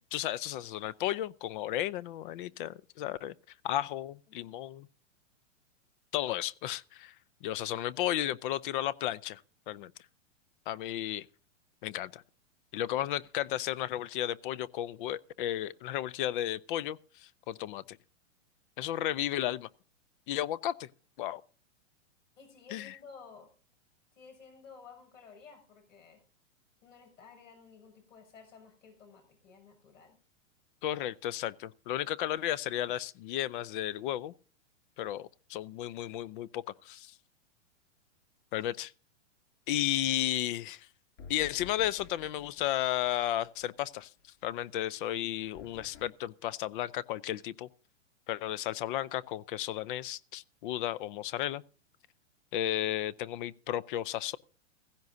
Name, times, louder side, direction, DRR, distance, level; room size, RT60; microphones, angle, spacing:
voice 1, 0.1-3.3 3.6-4.9 6.1-7.1 7.4-9.4 9.7-9.9 10.7-11.3 11.8-12.2 12.7-18.0 18.8-19.7 20.3-20.9 21.2-21.4 22.7-23.0 30.8-34.3 35.0-37.1 38.5-38.9 39.7-40.9 41.3-44.1 44.4-47.7 48.3-51.6 52.5-54.4, left 12 dB, 45° left, 0.6 m, -33 dB
voice 2, 22.4-23.5 24.1-26.2 26.8-30.2 38.6-38.7, left 5 dB, 85° left, 6.8 m, -54 dB
sound 1, 41.2-44.0 45.5-46.1, left 5 dB, 65° left, 3.1 m, -52 dB
16.0 x 16.0 x 2.7 m
hypercardioid pair, 135°, 38 cm